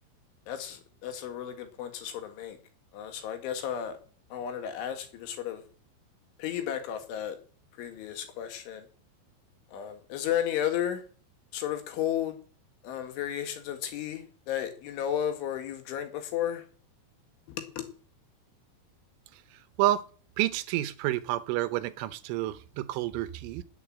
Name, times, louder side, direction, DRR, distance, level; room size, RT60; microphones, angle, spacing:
voice 1, 0.5-2.6 2.9-4.0 4.3-5.6 6.4-7.4 7.8-8.9 9.7-11.0 11.5-12.4 12.8-16.7 17.5-17.9, left 10 dB, 75° left, 8 dB, 4.1 m, -33 dB
voice 2, 19.3-20.0 20.4-23.6, right 14 dB, 80° right, 13 dB, 3.3 m, -29 dB
13.5 x 8.3 x 10.0 m, 0.42 s
omnidirectional pair, 5.8 m